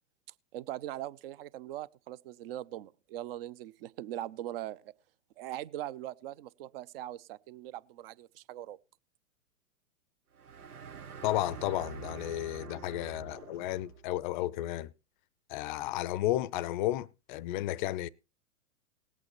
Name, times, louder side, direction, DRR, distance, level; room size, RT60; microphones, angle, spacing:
voice 1, 0.5-4.9 5.4-8.8, right 13 dB, 40° right, 0.5 m, -41 dB
sound 1, 10.3-14.1, right 7 dB, 90° right, 1.0 m, -46 dB
voice 2, 11.2-14.9 15.5-18.1, left 15 dB, 35° left, 0.5 m, -33 dB
19.0 x 8.3 x 3.0 m
hypercardioid pair, 115°, 44 cm